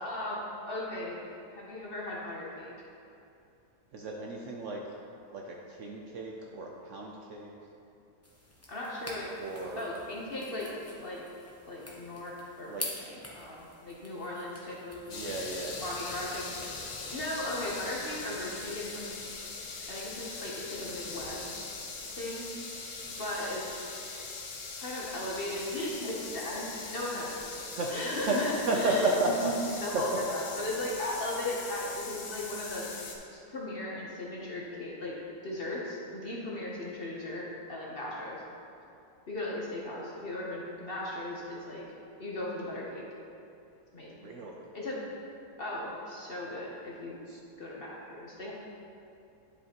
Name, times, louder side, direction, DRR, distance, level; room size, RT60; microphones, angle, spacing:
voice 1, 0.0-1.2 1.5-2.7 8.7-9.3 9.8-10.7 11.0-11.2 11.7-15.4 15.8-16.4 17.1-19.2 19.9-21.5 22.2-22.5 23.2-23.8 24.7-27.6 27.9-35.1 35.4-38.4 39.3-41.8 42.2-43.0 43.9-44.3 44.7-45.0 45.6-47.2 47.6-48.5, left 1 dB, 45° left, -4 dB, 0.9 m, -37 dB
voice 2, 3.9-4.8 5.3-7.5 9.4-9.9 12.7-12.9 15.1-15.8 27.7-27.9 28.3-28.4 28.7-29.5 29.9-30.0 44.2-44.7 47.3-47.4, right 2 dB, 65° right, -1 dB, 0.8 m, -32 dB
sound 1, 8.2-17.2, left 1 dB, 15° left, 0.6 m, -47 dB
sound 2, 15.1-33.2, left 4 dB, 75° left, 1.3 m, -41 dB
10.0 x 5.3 x 2.9 m, 2.7 s
omnidirectional pair, 1.7 m